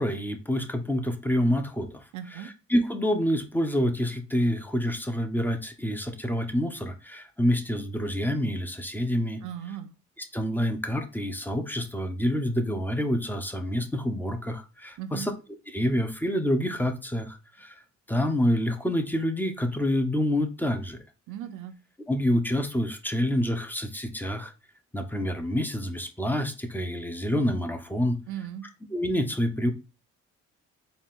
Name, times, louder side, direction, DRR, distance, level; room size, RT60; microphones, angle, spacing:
voice 1, 0.0-2.0 2.3-9.4 10.3-15.3 15.7-17.8 18.1-21.0 22.1-24.5 24.9-28.2 28.9-29.7, equal, 5° left, 7 dB, 0.7 m, -27 dB
voice 2, 2.1-2.5 9.4-9.9 15.0-15.3 21.3-21.8 28.3-28.7, right 10 dB, 75° right, 9 dB, 0.5 m, -37 dB
4.1 x 2.4 x 3.6 m, 0.31 s
cardioid pair, 90°, 30 cm